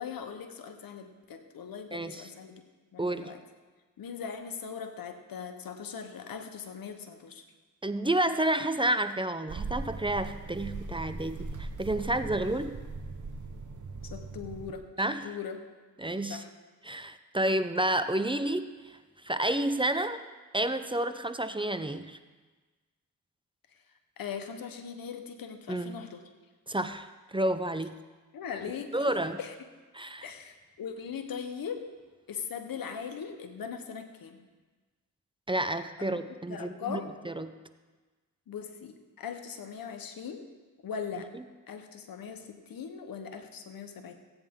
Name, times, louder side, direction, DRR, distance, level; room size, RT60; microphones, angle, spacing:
voice 1, 0.0-2.6 2.9-3.4 4.0-7.4 14.1-14.9 15.2-15.6 16.3-16.5 24.2-26.2 28.3-29.5 30.2-31.9 32.3-34.4 36.3-37.1 38.5-40.4 40.8-41.3 41.7-44.1, left 7 dB, 80° left, 7 dB, 1.1 m, -40 dB
voice 2, 1.9-2.3 3.0-3.3 7.8-12.8 15.0-15.3 16.0-16.4 16.8-19.0 19.2-20.2 20.5-22.2 25.7-26.0 26.7-27.1 27.3-28.0 28.9-29.4 29.9-30.3 35.5-37.5 41.3-41.4, right 1 dB, 15° right, 10 dB, 0.6 m, -30 dB
sound 1, 9.5-14.7, right 3 dB, 60° right, 1.1 m, -39 dB
16.0 x 8.9 x 3.7 m, 1.3 s
cardioid pair, 50°, 34 cm